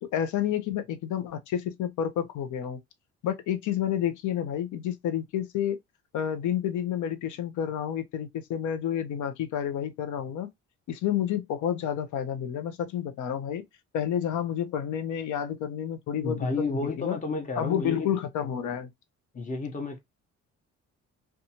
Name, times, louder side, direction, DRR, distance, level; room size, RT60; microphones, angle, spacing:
voice 1, 0.0-2.8 3.2-5.8 6.1-10.5 10.9-13.6 13.9-17.2 17.6-18.9, left 9 dB, 80° left, 0.6 m, -30 dB
voice 2, 16.2-18.1 19.3-20.0, left 3 dB, 25° left, 0.8 m, -31 dB
2.6 x 2.3 x 2.8 m
cardioid pair, 90°, 30 cm